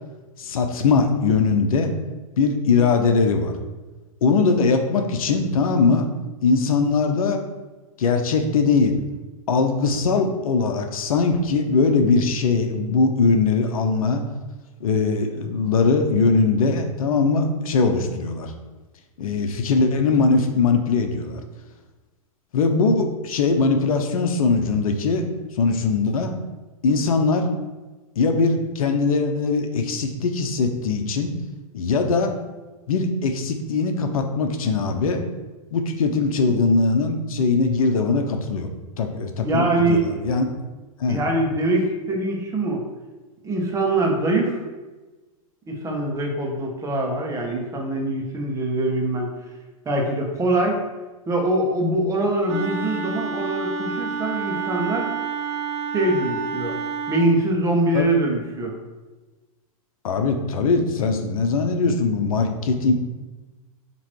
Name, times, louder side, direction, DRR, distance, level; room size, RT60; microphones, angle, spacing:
voice 1, 0.4-1.9 2.4-3.5 4.2-6.1 6.4-7.4 8.0-9.0 9.5-14.2 14.8-18.5 19.2-21.4 22.5-25.3 25.5-26.4 26.8-27.5 28.2-31.3 31.7-32.3 32.9-35.2 35.7-38.7 39.0-40.5 41.0-41.2 57.9-58.1 60.0-62.9, left 4 dB, 70° left, 5 dB, 0.9 m, -21 dB
voice 2, 39.4-40.2 41.1-42.8 43.4-44.6 45.7-49.3 49.8-50.8 51.3-55.1 55.9-56.8 57.1-58.7, right 2 dB, 15° right, 0 dB, 1.4 m, -23 dB
Wind instrument woodwind instrument, 52.5-57.3, right 5 dB, 50° right, 0.7 m, -29 dB
7.3 x 3.1 x 4.6 m, 1.2 s
hypercardioid pair, 115°, 19 cm